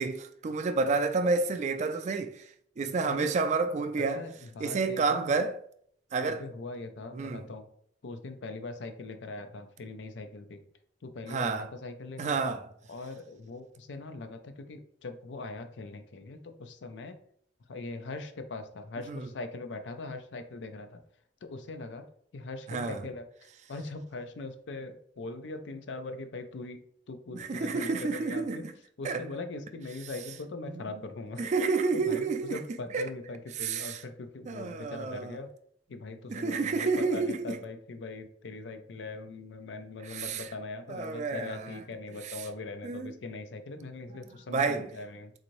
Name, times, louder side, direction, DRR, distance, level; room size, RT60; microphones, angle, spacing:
voice 1, 0.0-2.4 2.8-4.2 4.6-5.5 6.1-6.4 7.1-7.4 11.3-11.7 12.2-12.6 19.1-19.2 22.7-23.0 27.3-28.7 29.0-29.2 30.7-30.8 31.4-32.6 32.9-33.1 33.6-34.0 34.5-35.4 36.3-37.6 40.1-40.4 40.9-41.8 42.8-43.1 44.5-44.9, right 4 dB, 40° right, 0.3 m, -29 dB
voice 2, 3.0-3.4 4.0-5.3 6.2-7.7 8.0-10.6 11.0-12.4 12.9-17.2 17.7-21.0 21.4-22.1 22.3-26.8 27.1-28.7 29.0-31.5 31.9-35.5 35.9-45.3, left 3 dB, 90° left, 0.5 m, -41 dB
3.9 x 2.6 x 3.0 m
head